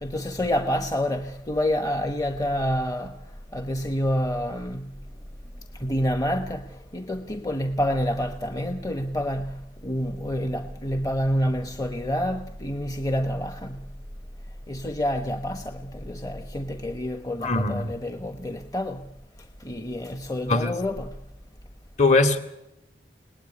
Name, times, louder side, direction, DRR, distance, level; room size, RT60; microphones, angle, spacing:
voice 1, 0.0-3.2 3.5-5.0 5.7-13.9 14.7-19.1 19.6-21.2, equal, 20° left, 1.1 m, -28 dB
voice 2, 17.4-17.9 20.5-20.8 22.0-22.4, left 3 dB, 45° left, 2.7 m, -21 dB
29.5 x 19.0 x 9.7 m
head